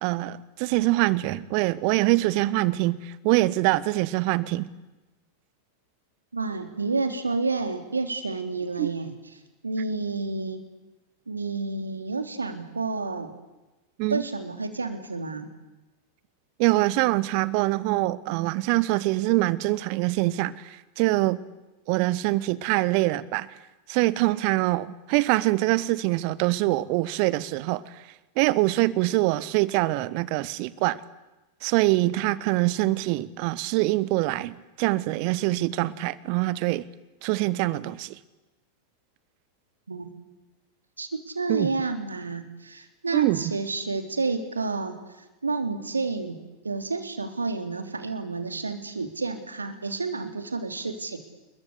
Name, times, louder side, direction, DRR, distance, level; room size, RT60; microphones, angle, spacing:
voice 1, 0.0-4.7 8.8-8.9 14.0-14.2 16.6-21.4 21.9-23.5 23.9-28.0 28.4-31.0 31.6-36.9 37.2-38.2 41.5-41.7 43.1-43.4, right 19 dB, 45° right, 19 dB, 1.3 m, -24 dB
voice 2, 6.3-9.1 9.6-10.6 11.3-13.3 14.1-15.5 39.9-40.1 41.0-46.4 46.6-51.2, right 3 dB, 75° right, 7 dB, 3.4 m, -30 dB
28.5 x 22.5 x 8.5 m, 1.1 s
figure-of-eight pair, 90°, 0 cm